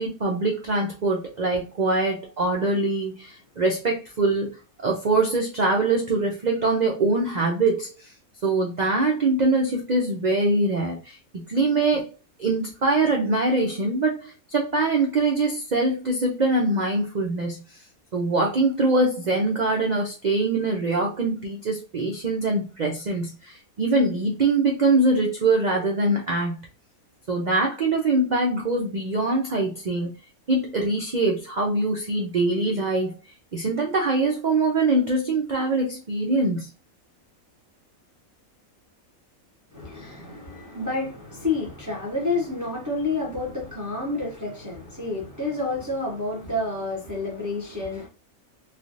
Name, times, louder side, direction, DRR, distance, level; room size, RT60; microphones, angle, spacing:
voice 1, 0.0-4.5 4.8-7.9 8.4-11.2 11.5-12.1 12.4-17.6 18.1-26.6 27.3-30.1 30.5-33.1 33.5-36.7, right 2 dB, 85° right, 0.3 m, -23 dB
voice 2, 39.7-48.1, left 3 dB, 20° right, 0.6 m, -29 dB
3.2 x 2.3 x 2.6 m
omnidirectional pair, 1.5 m